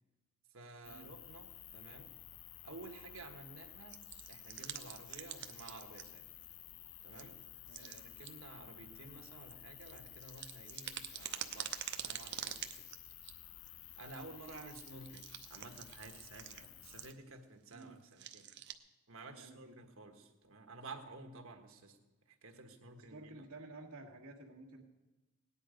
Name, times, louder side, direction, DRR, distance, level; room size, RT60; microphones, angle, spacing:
voice 1, 0.5-2.1 2.6-6.3 7.0-7.4 7.8-12.9 14.0-18.5 19.1-22.0 22.2-23.5, right 3 dB, 70° right, 4 dB, 1.4 m, -53 dB
sound 1, 0.8-17.1, left 12 dB, 60° left, 0.6 m, -54 dB
sound 2, 3.9-6.2 6.4-6.5 7.1-7.2 7.7-8.3 9.1-13.3 13.7-13.8 14.0-17.3 17.7-17.8 18.1-18.7, right 10 dB, 50° right, 0.7 m, -46 dB
voice 2, 7.7-8.0 14.1-14.3 17.7-18.0 19.3-19.8 22.8-24.8, right 2 dB, 90° right, -7 dB, 1.8 m, -53 dB
18.0 x 10.0 x 5.1 m, 1.1 s
head